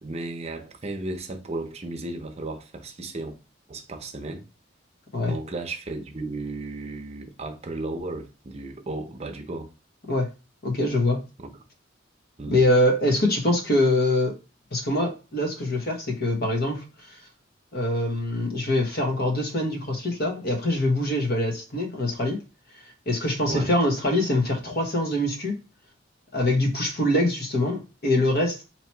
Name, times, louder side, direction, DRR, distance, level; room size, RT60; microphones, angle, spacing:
voice 1, 0.0-3.4 3.7-4.4 5.2-9.7 11.4-11.6 12.4-12.7 23.5-23.7, right 2 dB, 35° right, 0.6 m, -34 dB
voice 2, 10.6-11.2 12.5-14.4 14.7-17.2 17.7-22.4 23.1-25.6 26.3-28.6, left 1 dB, 55° left, 1.1 m, -24 dB
2.9 x 2.8 x 4.4 m
head